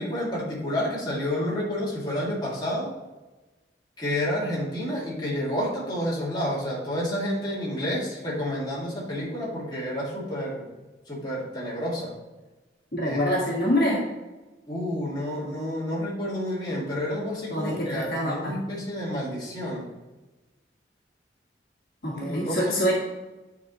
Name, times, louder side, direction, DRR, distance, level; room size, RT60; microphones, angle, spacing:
voice 1, 0.0-2.9 4.0-10.7 11.1-12.1 13.0-13.4 14.7-19.9 22.1-22.9, left 1 dB, 25° left, -7 dB, 2.1 m, -30 dB
voice 2, 12.9-14.0 17.5-18.6 22.0-22.9, equal, 55° left, -4 dB, 1.7 m, -25 dB
9.9 x 4.3 x 3.0 m, 1.1 s
head